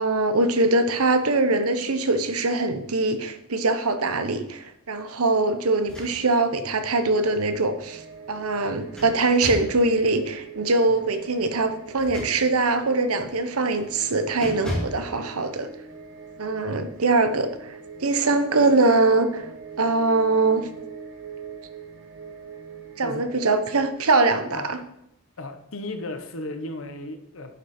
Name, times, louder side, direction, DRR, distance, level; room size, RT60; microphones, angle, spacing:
voice 1, 0.0-8.0 8.3-15.7 16.4-19.5 19.8-20.7 23.0-24.8, right 3 dB, 85° right, 9 dB, 1.0 m, -22 dB
sound 1, 5.7-6.5 6.9-7.0 8.5-9.8 11.9-12.8 13.3-13.5 13.8-14.0 14.4-15.1, equal, 5° left, 4.6 m, -35 dB
sound 2, 7.3-23.9, right 6 dB, 60° right, 1.3 m, -42 dB
voice 2, 25.4-27.6, left 2 dB, 65° left, 7 dB, 1.2 m, -35 dB
10.5 x 8.1 x 4.4 m, 0.78 s
head